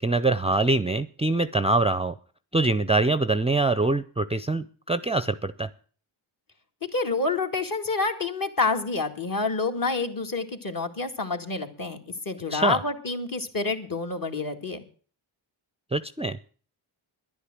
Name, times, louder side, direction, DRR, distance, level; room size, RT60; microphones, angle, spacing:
voice 1, 0.0-2.1 2.5-5.7 12.5-12.8 15.9-16.4, right 2 dB, 15° right, 14 dB, 0.5 m, -24 dB
voice 2, 6.9-12.0 12.3-14.8, left 3 dB, 45° left, 4 dB, 2.1 m, -28 dB
11.0 x 10.0 x 7.7 m, 0.42 s
cardioid pair, 70°, 48 cm